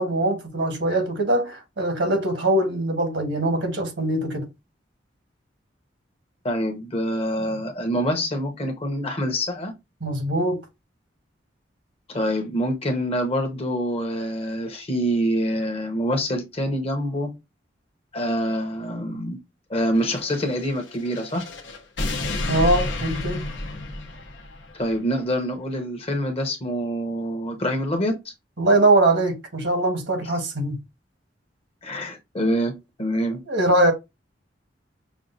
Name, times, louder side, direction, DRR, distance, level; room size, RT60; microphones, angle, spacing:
voice 1, 0.0-4.5 10.0-10.6 22.5-23.4 28.6-30.8 33.5-33.9, right 1 dB, 75° right, 1.4 m, -22 dB
voice 2, 6.4-9.7 12.1-17.3 18.1-19.4 19.7-21.4 24.7-28.3 31.8-33.4, equal, 35° left, 0.9 m, -26 dB
sound 1, 20.0-24.8, left 2 dB, 85° left, 0.9 m, -30 dB
6.2 x 2.3 x 2.7 m
head